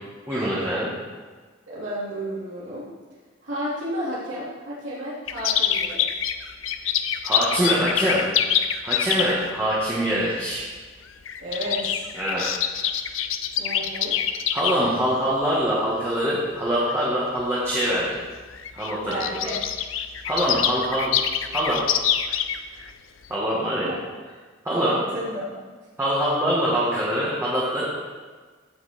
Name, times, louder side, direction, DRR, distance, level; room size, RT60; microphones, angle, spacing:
voice 1, 0.3-0.9 6.8-6.9 7.2-8.2 8.8-10.7 11.7-11.8 12.2-12.5 14.5-18.2 18.7-19.2 20.2-21.1 21.5-21.8 23.3-23.9 24.6-25.0 26.0-27.8, equal, 10° right, -8 dB, 1.8 m, -24 dB
voice 2, 1.7-2.9 3.4-6.2 11.4-12.0 13.6-14.2 19.0-19.6 23.8-24.0 24.7-25.6, equal, 70° right, -8 dB, 2.9 m, -32 dB
sound 1, 5.3-9.5 10.5-10.8 11.1-14.7 15.4-15.7 16.4-16.5 16.8-16.9 17.9-18.0 18.2-18.3 18.5-22.9 23.2-23.3, left 9 dB, 80° left, 0.6 m, -25 dB
16.0 x 6.0 x 4.4 m, 1.4 s
head